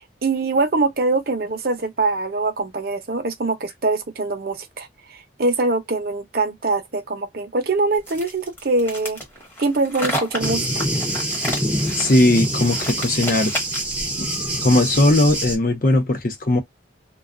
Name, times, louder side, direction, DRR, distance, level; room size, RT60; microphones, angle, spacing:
voice 1, 0.2-4.9 5.4-9.2 9.6-10.8, right 3 dB, 55° right, 0.6 m, -23 dB
sound 1, 8.0-14.0, equal, 10° left, 0.9 m, -31 dB
Thunder, 10.4-15.6, right 1 dB, 10° right, 0.6 m, -25 dB
voice 2, 12.0-13.5 14.2-14.3 14.6-16.6, left 1 dB, 50° left, 0.7 m, -18 dB
2.3 x 2.2 x 2.4 m
head